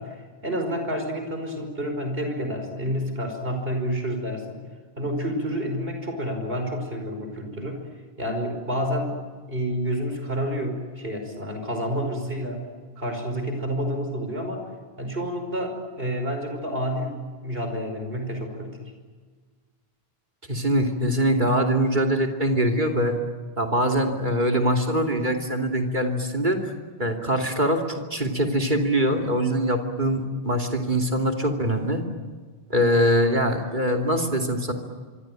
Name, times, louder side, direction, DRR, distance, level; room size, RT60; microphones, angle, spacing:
voice 1, 0.0-4.6 5.0-7.8 8.2-9.2 9.5-14.6 15.0-18.8, equal, 65° right, 5 dB, 5.5 m, -29 dB
voice 2, 20.5-23.2 23.6-26.6 27.0-32.0 32.7-34.7, equal, 50° right, 2 dB, 3.1 m, -23 dB
25.5 x 24.5 x 9.1 m, 1.5 s
omnidirectional pair, 1.1 m